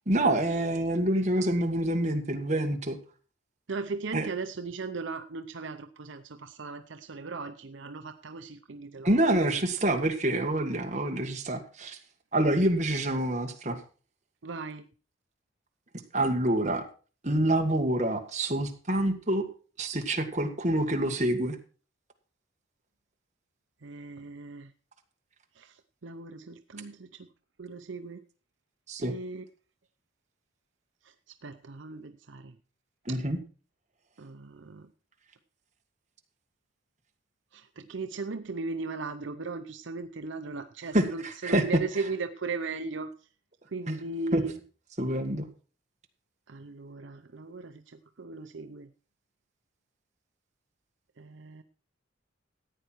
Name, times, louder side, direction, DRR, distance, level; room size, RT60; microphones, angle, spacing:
voice 1, 0.1-3.0 4.1-4.3 9.0-12.0 12.3-13.8 16.1-16.8 17.2-19.4 19.8-21.6 28.9-29.1 33.1-33.4 40.9-41.6 43.9-44.0 44.3-44.6 45.0-45.5, right 1 dB, 35° right, 3 dB, 1.8 m, -27 dB
voice 2, 3.7-9.2 14.4-14.9 23.8-24.7 25.6-27.3 27.6-28.2 29.0-29.4 31.0-31.1 31.4-32.6 33.1-33.2 34.2-34.9 37.5-43.1 43.7-44.5 46.5-48.9 51.2-51.6, right 3 dB, 70° right, 8 dB, 0.7 m, -37 dB
14.5 x 9.3 x 4.5 m, 0.38 s
head